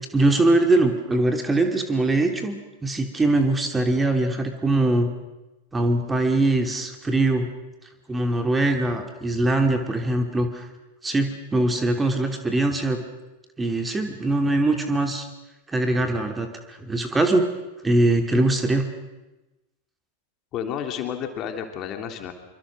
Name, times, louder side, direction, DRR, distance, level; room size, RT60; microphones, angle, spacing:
voice 1, 0.1-2.6 2.8-5.1 5.7-7.5 8.1-10.7 11.0-13.0 13.6-15.3 15.7-17.4 17.8-18.9, right 2 dB, 10° right, 5 dB, 2.5 m, -22 dB
voice 2, 20.5-22.3, left 8 dB, 35° left, 5 dB, 3.2 m, -31 dB
27.0 x 25.0 x 6.3 m, 1.1 s
figure-of-eight pair, 90°, 0 cm